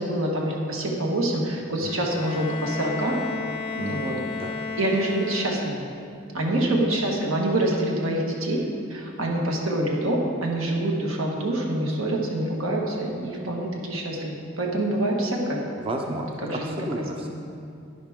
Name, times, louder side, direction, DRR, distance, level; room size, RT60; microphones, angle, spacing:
voice 1, 0.0-3.2 3.8-4.2 4.8-5.8 6.3-8.6 8.9-15.6 16.1-16.7 17.0-17.3, right 1 dB, 85° right, -1 dB, 1.6 m, -26 dB
Bowed string instrument, 1.8-6.0, left 4 dB, 25° left, 0.4 m, -33 dB
voice 2, 3.8-4.5 15.8-17.3, right 1 dB, 25° right, 2 dB, 0.5 m, -33 dB
11.0 x 10.5 x 3.6 m, 2.4 s
head